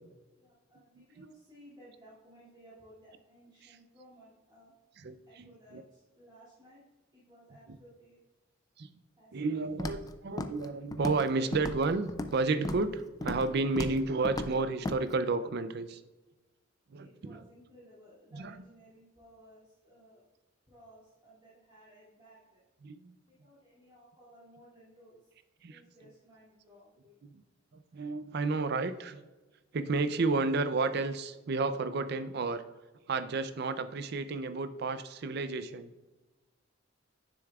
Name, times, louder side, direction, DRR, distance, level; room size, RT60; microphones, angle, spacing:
voice 1, 0.4-4.7 5.3-6.8 7.1-8.2 9.2-9.6 17.0-20.2 20.7-22.6 23.2-25.2 25.7-27.2, equal, 20° right, -11 dB, 2.4 m, -58 dB
voice 2, 1.0-1.3 5.0-5.8 7.7-7.8 8.8-8.9 9.3-16.0 16.9-17.4 18.3-18.6 22.8-23.1 25.6-25.8 27.2-27.4 27.9-29.2 29.7-32.6 33.1-35.9, right 3 dB, 55° right, 11 dB, 0.4 m, -32 dB
Walk footsteps, 9.8-10.1 10.4-10.7 10.9-11.3 11.5-12.4 12.6-12.9 13.2-13.5 13.8-14.0 14.2-14.5 14.8-15.0, left 2 dB, 20° left, 0.3 m, -35 dB
9.7 x 7.0 x 2.3 m, 1.1 s
head